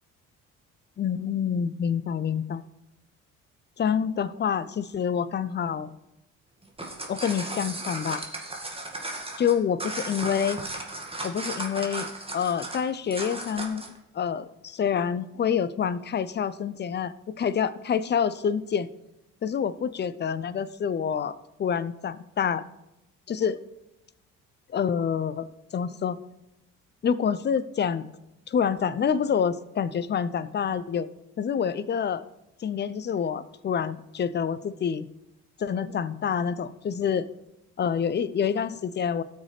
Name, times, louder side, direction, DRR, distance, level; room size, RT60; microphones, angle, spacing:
voice 1, 1.0-2.6 3.8-5.9 7.1-8.2 9.4-10.6 11.2-12.1 12.3-13.8 14.1-18.9 19.4-22.6 23.3-23.6 24.7-25.5 25.7-26.2 27.0-28.1 28.5-31.1 31.4-32.2 32.6-35.1 35.6-37.3 37.8-39.2, left 7 dB, 25° left, 16 dB, 0.5 m, -27 dB
sound 1, 6.6-14.0, right 2 dB, 10° right, 1.9 m, -35 dB
17.0 x 6.2 x 3.3 m, 0.91 s
figure-of-eight pair, 50°, 44 cm